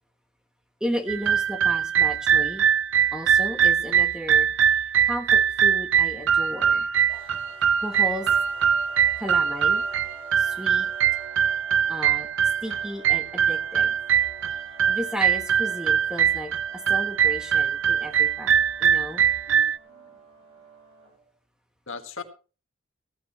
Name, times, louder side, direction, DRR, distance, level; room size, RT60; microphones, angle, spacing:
voice 1, 0.8-2.6 3.1-4.8 5.1-6.9 7.8-8.3 9.2-9.8 10.4-10.9 11.9-12.3 12.6-13.9 14.9-19.2, equal, 5° right, 5 dB, 1.2 m, -34 dB
sound 1, 1.1-19.8, right 8 dB, 60° right, 0.5 m, -22 dB
sound 2, 7.1-21.3, right 2 dB, 25° right, 7.3 m, -48 dB
voice 2, 19.1-20.1 21.9-22.2, left 5 dB, 65° left, 6 dB, 1.8 m, -40 dB
16.0 x 14.0 x 3.1 m, 0.36 s
head